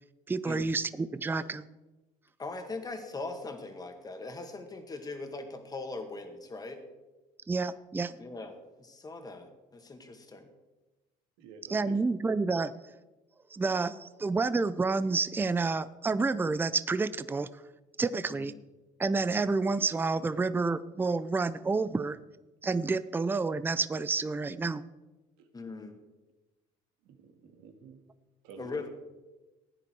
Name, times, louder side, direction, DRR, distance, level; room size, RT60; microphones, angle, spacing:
voice 1, 0.3-1.7 7.5-8.2 11.7-12.7 13.5-17.5 18.0-18.5 19.0-22.2 22.6-24.8, right 4 dB, 15° right, 15 dB, 0.5 m, -29 dB
voice 2, 2.4-6.8 8.2-10.5 18.3-18.4 25.5-25.9 28.6-28.9, left 3 dB, 25° left, 6 dB, 2.1 m, -40 dB
voice 3, 11.4-12.0 25.4-25.5 27.0-28.0 28.4-28.9, right 5 dB, 85° right, 5 dB, 1.9 m, -50 dB
16.0 x 9.7 x 4.7 m, 1.1 s
cardioid pair, 105°, 16 cm